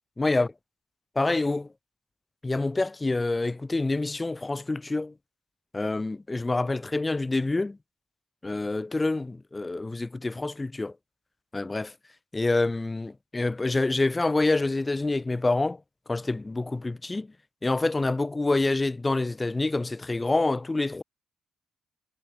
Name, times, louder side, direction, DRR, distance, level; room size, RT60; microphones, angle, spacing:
voice 1, 0.2-0.5 1.1-1.7 2.4-5.1 5.7-7.8 8.4-10.9 11.5-11.9 12.3-15.8 16.1-17.3 17.6-21.0, left 2 dB, 20° left, 1.4 m, -27 dB
cardioid pair, 115°, 0 cm